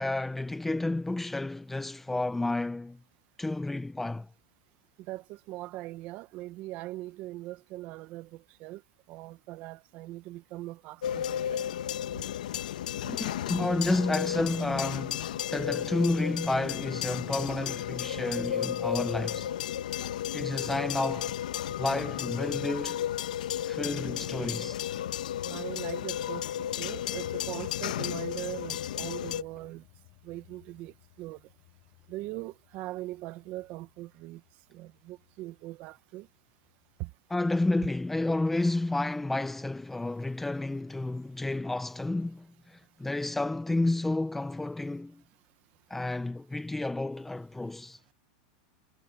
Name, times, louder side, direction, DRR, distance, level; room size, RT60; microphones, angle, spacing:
voice 1, 0.0-3.0 3.4-4.3 13.1-19.5 20.3-21.3 21.8-23.0 23.6-24.8 37.3-45.2 45.9-48.0, left 2 dB, 5° left, 0.7 m, -31 dB
voice 2, 5.0-8.8 9.1-11.6 12.1-12.2 25.5-29.8 30.2-31.4 32.1-34.4 34.7-36.3 37.0-37.1, right 17 dB, 40° right, 1.4 m, -41 dB
sound 1, 11.0-29.4, left 11 dB, 85° left, 1.7 m, -33 dB
sound 2, 25.9-37.0, left 34 dB, 50° left, 7.0 m, -57 dB
supercardioid pair, 155°, 4 cm